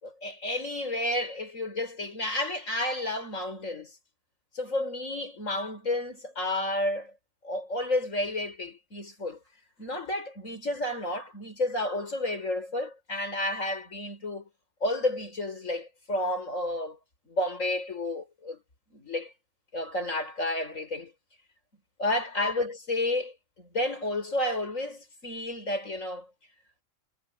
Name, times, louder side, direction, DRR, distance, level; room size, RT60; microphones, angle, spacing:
voice 1, 0.0-3.9 4.5-7.1 7.4-9.4 9.8-14.5 14.8-17.0 17.3-18.6 18.9-19.3 19.7-21.1 22.0-26.3, left 1 dB, 80° left, 5.9 m, -31 dB
omnidirectional pair, 1.3 m